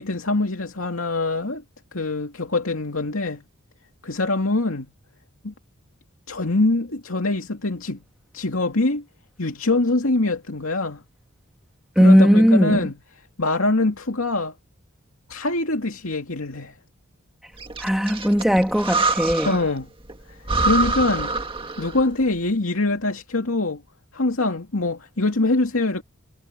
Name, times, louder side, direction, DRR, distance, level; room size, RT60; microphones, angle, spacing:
voice 1, 0.0-1.6 1.9-3.4 4.0-4.9 5.4-5.5 6.3-8.0 8.3-9.0 9.4-11.0 12.0-13.0 13.4-14.5 15.3-16.8 19.4-19.9 20.3-21.4 21.8-23.8 24.1-26.0, left 2 dB, 85° left, 2.5 m, -24 dB
voice 2, 11.9-12.8 17.8-19.6, equal, ahead, 1.5 m, -17 dB
Breathing, 17.6-19.8 20.1-20.2 20.5-22.1, right 3 dB, 25° right, 1.9 m, -25 dB
head